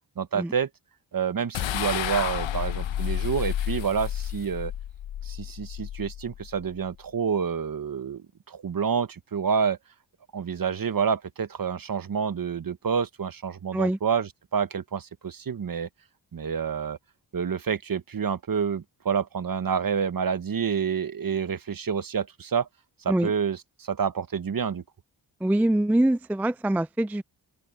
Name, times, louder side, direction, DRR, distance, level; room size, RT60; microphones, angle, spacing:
voice 1, 0.2-0.7 1.1-4.7 5.2-9.8 10.3-15.9 16.3-17.0 17.3-22.7 23.0-24.8, right 6 dB, 50° right, 1.2 m, -28 dB
sound 1, 1.5-6.9, left 11 dB, 85° left, 1.0 m, -31 dB
voice 2, 25.4-27.2, right 1 dB, 5° right, 0.4 m, -24 dB
open air
cardioid pair, 50°, 44 cm